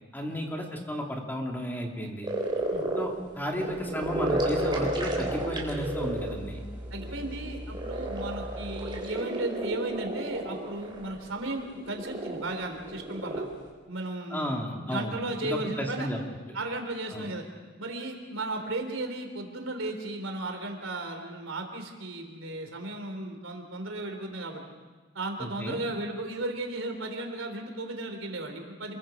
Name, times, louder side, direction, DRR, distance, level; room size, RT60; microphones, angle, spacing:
voice 1, 0.1-2.3 3.0-6.6 14.3-16.2 17.1-17.3 25.4-25.8, equal, 10° left, 0 dB, 2.5 m, -33 dB
sound 1, 2.2-13.6, right 1 dB, 25° right, 4.1 m, -32 dB
sound 2, 4.0-9.0, equal, 5° right, 2.1 m, -41 dB
voice 2, 6.9-13.4 13.9-16.1 16.5-17.4 17.8-24.6 25.1-29.0, right 2 dB, 90° right, 4 dB, 3.5 m, -35 dB
27.5 x 22.0 x 5.1 m, 1.4 s
head